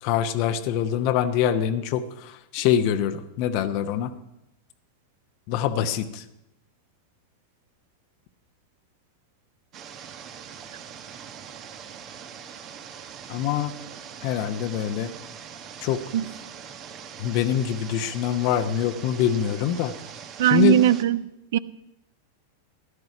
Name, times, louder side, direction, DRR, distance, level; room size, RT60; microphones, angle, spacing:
voice 1, 0.0-4.1 5.5-6.2 13.3-13.7 14.2-15.1 15.8-16.0 17.2-19.9 20.4-20.8, left 10 dB, 45° left, 8 dB, 1.0 m, -24 dB
sound 1, 9.7-21.0, right 7 dB, 35° right, 1.3 m, -42 dB
voice 2, 20.4-21.2 21.5-21.6, right 13 dB, 55° right, 18 dB, 0.6 m, -19 dB
16.0 x 12.0 x 5.9 m, 0.86 s
figure-of-eight pair, 90°, 0 cm